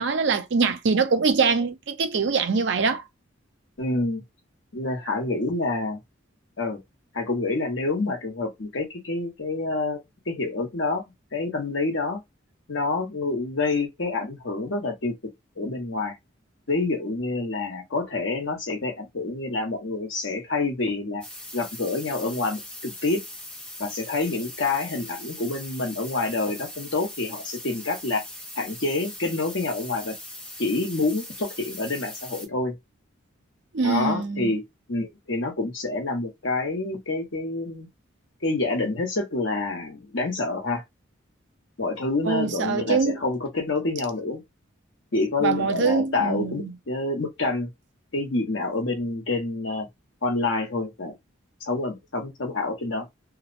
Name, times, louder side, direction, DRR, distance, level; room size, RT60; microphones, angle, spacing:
voice 1, 0.0-3.0 33.7-34.5 42.2-43.2 45.4-46.7, right 4 dB, 60° right, 0.5 m, -23 dB
voice 2, 3.8-4.2 4.7-6.0 6.6-6.8 7.1-10.0 10.3-11.0 11.3-12.2 12.7-15.1 15.6-16.2 16.7-21.2 21.5-23.2 23.8-28.2 28.5-30.1 30.6-32.7 33.8-34.6 34.9-37.9 38.4-40.8 41.8-44.4 45.1-47.7 48.1-49.9 50.2-51.1 51.7-53.0, left 3 dB, 65° left, 1.0 m, -27 dB
sound 1, 21.2-32.5, left 1 dB, 5° left, 0.5 m, -40 dB
2.8 x 2.0 x 2.5 m
head